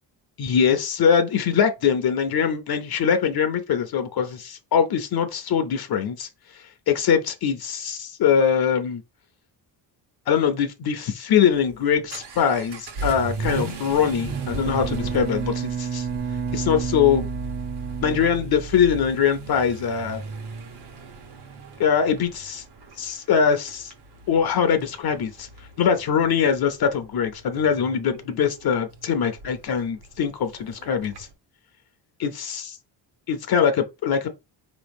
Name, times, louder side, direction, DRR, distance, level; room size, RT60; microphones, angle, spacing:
voice 1, 0.4-6.3 6.9-9.0 10.3-16.1 16.5-17.3 18.0-20.2 21.8-22.6 23.0-23.9 24.3-25.5 25.8-31.3 32.2-32.8 33.3-34.3, left 7 dB, 55° left, 0.7 m, -22 dB
Vehicle / Accelerating revving vroom, 11.5-31.3, right 2 dB, 60° right, 1.1 m, -36 dB
Bowed string instrument, 14.3-19.0, right 7 dB, 25° right, 0.4 m, -31 dB
4.5 x 3.0 x 3.4 m
cardioid pair, 145°, 45 cm